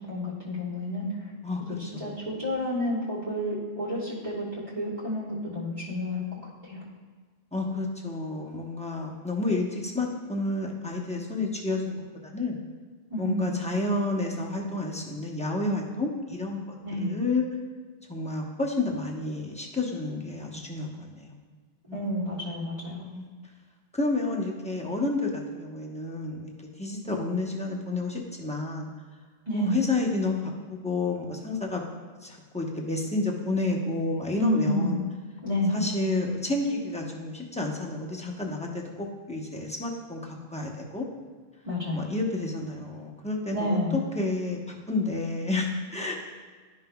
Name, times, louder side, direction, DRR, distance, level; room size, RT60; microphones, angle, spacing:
voice 1, 0.1-1.1 2.0-4.4 4.7-6.8 13.1-13.5 16.8-17.1 21.9-23.0 29.5-29.8 34.3-35.0 35.4-35.8 41.6-42.1 43.5-44.0, left 1 dB, 30° right, -10 dB, 1.5 m, -29 dB
voice 2, 1.4-2.1 7.5-12.6 13.2-16.8 17.0-17.4 18.1-21.4 21.9-22.4 23.0-23.3 23.9-26.5 26.8-28.9 29.5-31.8 32.2-35.0 35.7-41.1 41.9-43.8 44.1-46.1, left 2 dB, 5° left, -2 dB, 0.7 m, -30 dB
11.5 x 5.5 x 2.3 m, 1.5 s
omnidirectional pair, 1.0 m